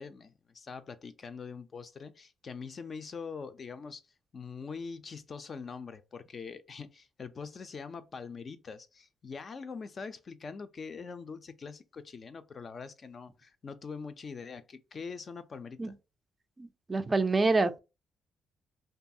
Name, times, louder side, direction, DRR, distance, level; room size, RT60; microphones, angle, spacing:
voice 1, 0.0-4.0 4.3-16.0, left 5 dB, 45° left, 0.4 m, -43 dB
voice 2, 16.6-17.8, right 3 dB, 25° right, 0.3 m, -27 dB
2.6 x 2.3 x 2.6 m
cardioid pair, 90°, 0 cm